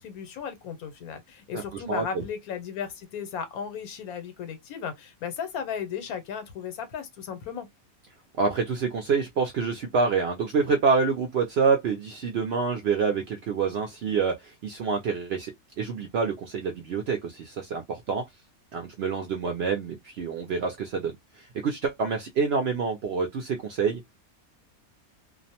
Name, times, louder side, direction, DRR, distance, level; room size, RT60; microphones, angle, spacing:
voice 1, 0.0-7.7, left 7 dB, 85° left, 1.2 m, -35 dB
voice 2, 1.5-2.2 8.4-15.5 15.8-18.2 18.7-21.2 21.6-24.0, right 5 dB, 65° right, 0.6 m, -27 dB
2.5 x 2.0 x 2.7 m
omnidirectional pair, 1.5 m